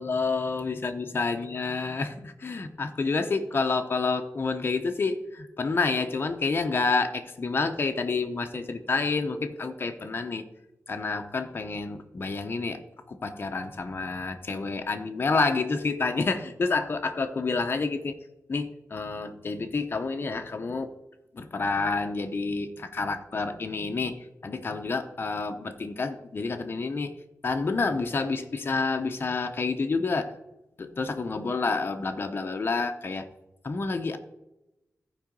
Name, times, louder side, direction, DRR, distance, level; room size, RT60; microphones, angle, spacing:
voice 1, 0.0-10.4 10.9-12.8 13.1-18.1 18.5-20.9 21.3-24.2 24.4-27.1 27.4-30.3 30.8-33.3 33.6-34.2, left 4 dB, 40° left, 6 dB, 0.7 m, -29 dB
14.0 x 4.8 x 5.2 m, 0.96 s
wide cardioid pair, 170°, 6 cm